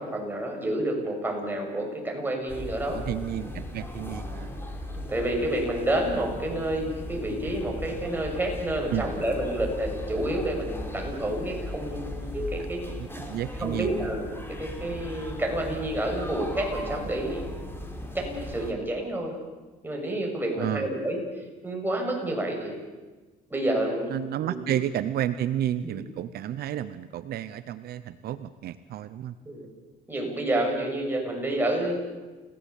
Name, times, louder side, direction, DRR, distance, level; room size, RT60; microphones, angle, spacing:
voice 1, 0.0-3.0 5.1-12.8 13.6-17.4 18.1-19.3 19.8-21.2 21.6-22.7 23.5-24.8 25.8-26.0 29.5-29.7 30.1-31.9, right 1 dB, 10° right, 0 dB, 7.2 m, -29 dB
sound 1, 2.5-18.7, left 1 dB, 15° left, 4.1 m, -37 dB
voice 2, 2.9-4.5 8.9-9.1 12.9-13.9 20.6-20.9 24.1-29.3, right 11 dB, 65° right, 13 dB, 0.9 m, -31 dB
29.5 x 17.5 x 8.5 m, 1.3 s
cardioid pair, 110°, 17 cm